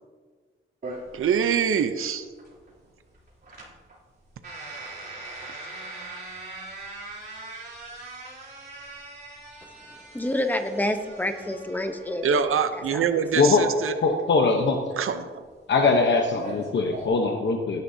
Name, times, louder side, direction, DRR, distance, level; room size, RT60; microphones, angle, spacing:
sound 1, 0.8-17.1, right 2 dB, 50° right, 3.0 m, -42 dB
voice 1, 1.1-2.3 12.2-14.0 15.0-15.4, right 7 dB, 80° right, 10 dB, 0.7 m, -24 dB
voice 2, 9.9-12.6 12.9-13.4, left 1 dB, 10° left, 6 dB, 0.9 m, -29 dB
voice 3, 14.0-14.8 15.7-17.8, left 4 dB, 60° left, 2 dB, 0.9 m, -21 dB
16.5 x 10.5 x 2.7 m, 1.5 s
wide cardioid pair, 145°, 21 cm